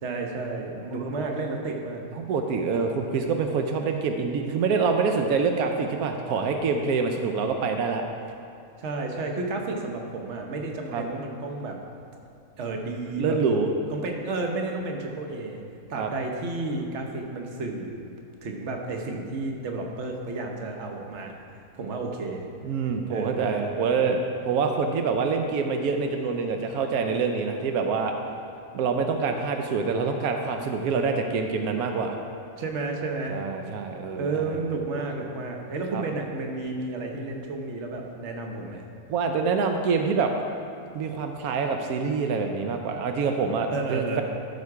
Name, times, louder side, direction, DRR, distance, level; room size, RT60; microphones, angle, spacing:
voice 1, 0.0-2.0 8.8-11.8 12.6-13.4 13.9-15.6 15.9-18.1 18.4-21.4 21.7-22.5 23.1-24.1 32.6-33.4 34.2-38.8 43.7-44.2, right 3 dB, 55° right, 2 dB, 1.2 m, -32 dB
voice 2, 2.2-8.0 10.9-11.0 13.2-13.7 15.9-16.1 22.6-28.2 28.7-32.2 33.3-34.6 35.9-36.0 39.1-40.4 40.9-44.2, right 5 dB, 85° right, 4 dB, 1.1 m, -26 dB
12.5 x 4.8 x 4.7 m, 2.5 s
omnidirectional pair, 1.5 m